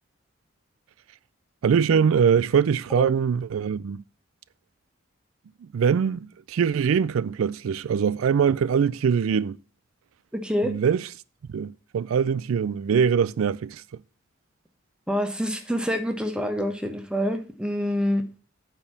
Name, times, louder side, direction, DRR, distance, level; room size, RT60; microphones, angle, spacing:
voice 1, 1.6-4.0 5.7-9.6 10.6-11.1 11.5-13.8, right 7 dB, 85° right, 0.4 m, -23 dB
voice 2, 10.3-10.7 15.1-18.2, equal, 5° right, 1.1 m, -26 dB
8.7 x 4.5 x 7.2 m
head